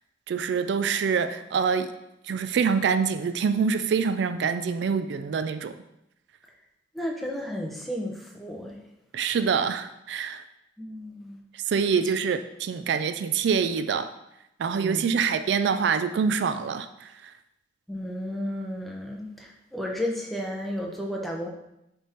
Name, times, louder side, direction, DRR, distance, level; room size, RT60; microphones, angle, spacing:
voice 1, 0.3-1.9 2.3-5.7 9.1-10.4 11.7-14.1 14.6-17.3, right 6 dB, 70° right, 10 dB, 0.3 m, -25 dB
voice 2, 6.9-8.8 10.8-11.4 14.7-15.1 17.9-21.5, equal, ahead, -1 dB, 0.7 m, -33 dB
7.3 x 3.5 x 4.2 m, 0.85 s
head